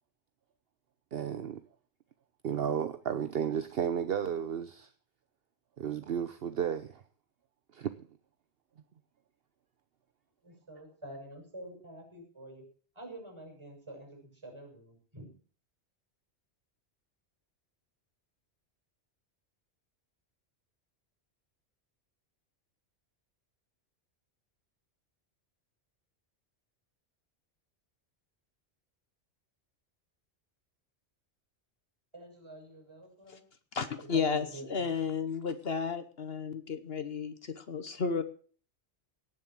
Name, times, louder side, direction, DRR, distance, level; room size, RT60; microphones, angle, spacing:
voice 1, 1.1-1.6 2.4-4.9 5.8-7.0 7.7-7.9, right 8 dB, 60° right, 11 dB, 1.0 m, -33 dB
voice 2, 10.4-12.6 12.9-15.3 32.1-33.4 34.0-34.7, right 1 dB, 25° right, 2 dB, 6.7 m, -47 dB
voice 3, 33.7-38.2, left 5 dB, 60° left, 11 dB, 1.3 m, -33 dB
18.0 x 7.3 x 7.4 m, 0.43 s
omnidirectional pair, 1.2 m